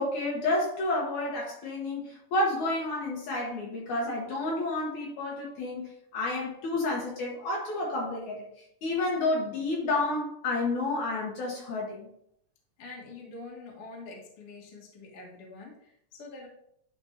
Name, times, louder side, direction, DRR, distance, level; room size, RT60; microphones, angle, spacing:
voice 1, 0.0-8.5 8.8-12.1, left 2 dB, 65° left, -3 dB, 2.5 m, -30 dB
voice 2, 12.8-16.5, left 3 dB, 50° left, -1 dB, 2.1 m, -45 dB
11.0 x 4.3 x 2.8 m, 0.71 s
omnidirectional pair, 3.9 m